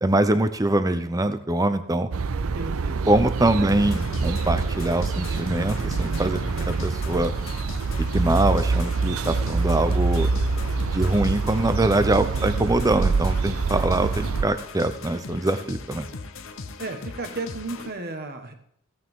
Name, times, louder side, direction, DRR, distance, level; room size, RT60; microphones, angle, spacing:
voice 1, 0.0-2.1 3.1-7.3 8.0-10.3 10.9-16.0, right 2 dB, 15° right, 10 dB, 0.7 m, -23 dB
sound 1, 2.1-14.5, right 4 dB, 70° right, 0.6 m, -26 dB
voice 2, 2.5-3.0 3.6-3.7 12.2-12.4 16.8-18.5, right 3 dB, 50° right, 6 dB, 1.5 m, -34 dB
sound 2, 3.7-17.9, left 4 dB, 65° left, 0.8 m, -39 dB
16.0 x 8.9 x 3.7 m, 0.67 s
head